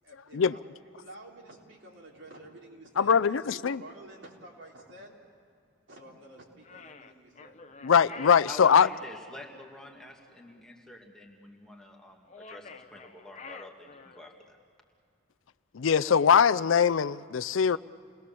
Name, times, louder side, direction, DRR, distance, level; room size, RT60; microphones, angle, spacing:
voice 1, 0.0-5.1 5.9-7.8, right 1 dB, 75° right, 4.0 m, -50 dB
voice 2, 3.0-3.8 7.8-8.9 15.7-17.8, left 7 dB, 85° left, 0.5 m, -22 dB
sound 1, 6.6-9.1 12.2-14.4, left 4 dB, 35° left, 0.8 m, -48 dB
voice 3, 8.5-14.6, left 1 dB, 5° left, 1.9 m, -48 dB
29.0 x 20.0 x 7.0 m
head